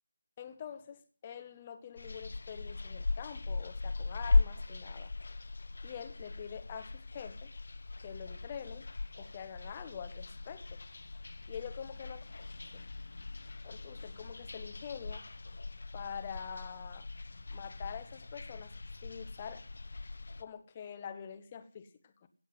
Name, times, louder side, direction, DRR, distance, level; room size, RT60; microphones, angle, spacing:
voice 1, 0.4-5.1 5.8-7.5 8.0-8.9 9.2-10.8 11.5-12.2 12.6-12.9 13.6-15.2 15.9-17.1 17.5-19.6 20.4-22.3, left 7 dB, 20° left, 1.2 m, -45 dB
sound 1, 2.0-20.4, left 3 dB, 50° left, 0.9 m, -38 dB
16.5 x 7.8 x 7.9 m
figure-of-eight pair, 160°, 0 cm